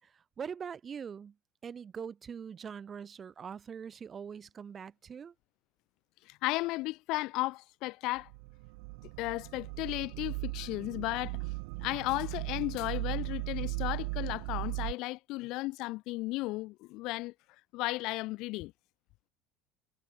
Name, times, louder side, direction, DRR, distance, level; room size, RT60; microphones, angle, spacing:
voice 1, 0.0-1.3 1.6-5.3, right 7 dB, 25° right, 1.6 m, -43 dB
voice 2, 6.2-8.3 9.2-11.5 11.8-17.3 17.7-18.7, left 21 dB, 60° left, 0.7 m, -34 dB
sound 1, 8.2-14.9, right 30 dB, 85° right, 0.7 m, -37 dB
cardioid pair, 145°, 0 cm